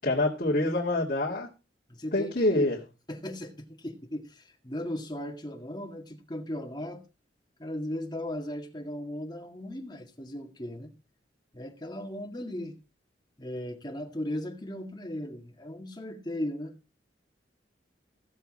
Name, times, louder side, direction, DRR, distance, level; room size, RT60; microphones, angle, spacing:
voice 1, 0.0-1.5 2.1-2.8, left 1 dB, 50° left, 2.5 m, -26 dB
voice 2, 1.9-2.7 3.1-7.0 7.6-10.9 11.5-12.8 13.4-16.7, left 1 dB, 25° left, 1.9 m, -37 dB
16.0 x 7.2 x 4.2 m
head